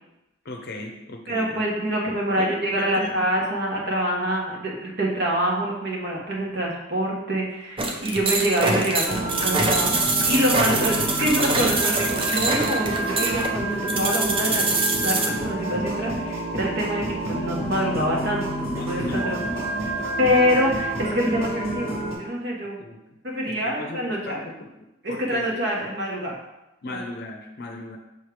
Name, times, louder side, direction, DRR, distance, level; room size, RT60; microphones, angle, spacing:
voice 1, 0.4-1.6 2.4-3.1 18.7-20.3 22.8-23.0 23.4-24.7 25.1-25.6 26.8-28.0, left 2 dB, 50° left, 3 dB, 0.6 m, -37 dB
voice 2, 1.3-19.4 19.8-19.9 20.2-22.8 23.2-24.4 25.0-26.4 26.9-27.0, equal, 50° right, -2 dB, 1.3 m, -25 dB
sound 1, 7.8-15.3, right 3 dB, 25° right, 0.5 m, -24 dB
sound 2, 9.0-22.1, right 1 dB, 90° right, 2.0 m, -29 dB
6.4 x 3.2 x 4.8 m, 0.94 s
head